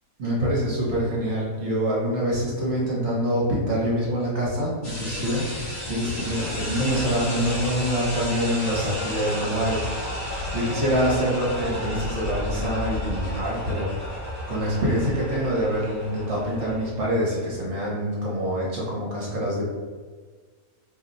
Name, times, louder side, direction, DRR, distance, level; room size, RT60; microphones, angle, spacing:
voice 1, 0.2-19.6, equal, 55° right, -5 dB, 1.1 m, -26 dB
sound 1, 4.8-16.8, left 1 dB, 30° left, 0.9 m, -32 dB
2.8 x 2.1 x 3.9 m, 1.5 s
omnidirectional pair, 1.6 m